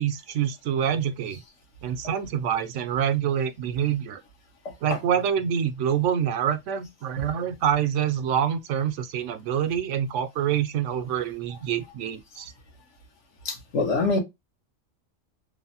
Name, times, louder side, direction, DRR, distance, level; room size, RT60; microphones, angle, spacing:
voice 1, 0.0-1.4 1.8-4.2 4.8-12.5, right 9 dB, 85° right, 0.9 m, -26 dB
voice 2, 4.6-5.0 13.4-14.2, left 3 dB, 80° left, 1.3 m, -25 dB
3.2 x 2.0 x 2.6 m
omnidirectional pair, 1.2 m